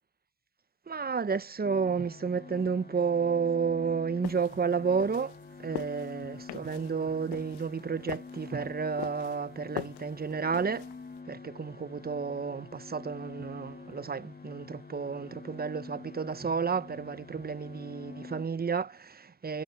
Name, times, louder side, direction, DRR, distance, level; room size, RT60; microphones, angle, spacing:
voice 1, 0.9-10.9 11.3-19.6, right 5 dB, 25° right, 1.0 m, -31 dB
sound 1, 1.6-18.5, left 4 dB, 20° left, 2.6 m, -47 dB
sound 2, 4.2-11.2, left 18 dB, 70° left, 1.0 m, -43 dB
supercardioid pair, 75°, 40 cm